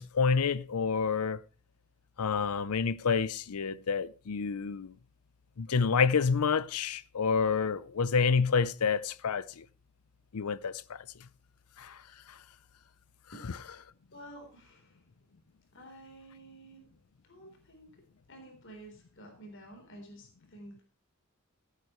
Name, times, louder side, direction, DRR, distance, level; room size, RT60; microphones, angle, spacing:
voice 1, 0.0-1.4 2.2-4.9 5.6-9.6 10.3-11.0 11.8-12.0, left 5 dB, 85° left, 0.6 m, -28 dB
voice 2, 14.1-15.0 15.7-16.9 17.2-20.8, right 1 dB, 55° left, 3.7 m, -51 dB
15.0 x 11.0 x 3.1 m
head